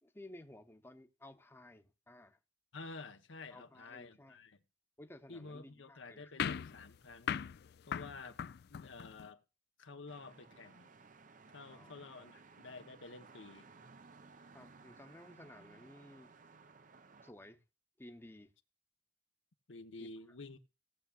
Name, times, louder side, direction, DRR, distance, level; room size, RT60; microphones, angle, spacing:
voice 1, 0.0-2.4 3.5-4.4 5.0-6.3 11.7-12.3 14.5-16.3 17.2-17.6 18.0-18.5 19.9-20.1, left 1 dB, 10° left, 0.9 m, -55 dB
voice 2, 2.7-4.6 5.3-7.4 7.9-8.4 8.7-9.4 9.8-10.9 11.5-13.7 19.7-20.6, left 3 dB, 85° left, 1.0 m, -50 dB
sound 1, 6.4-9.3, left 8 dB, 55° left, 0.4 m, -40 dB
sound 2, 10.1-17.3, right 4 dB, 45° right, 0.7 m, -59 dB
17.5 x 7.0 x 2.4 m
head